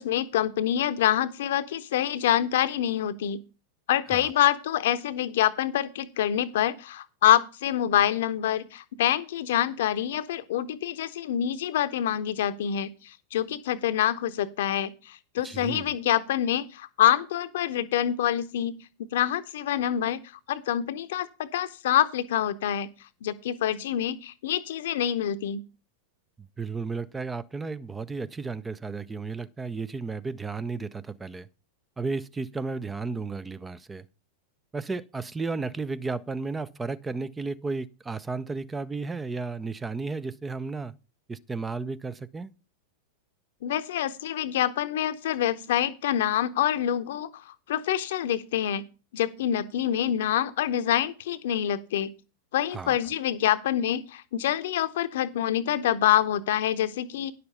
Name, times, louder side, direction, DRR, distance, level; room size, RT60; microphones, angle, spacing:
voice 1, 0.0-3.4 3.9-18.8 19.1-20.2 20.5-22.9 23.2-25.6 43.6-48.8 49.1-52.1 52.5-57.3, left 11 dB, 55° left, 0.8 m, -26 dB
voice 2, 15.4-15.9 26.6-31.5 32.0-34.0 34.7-40.9 41.3-42.5 52.7-53.0, right 4 dB, 10° right, 0.5 m, -33 dB
10.5 x 6.8 x 5.4 m
figure-of-eight pair, 90°, 0 cm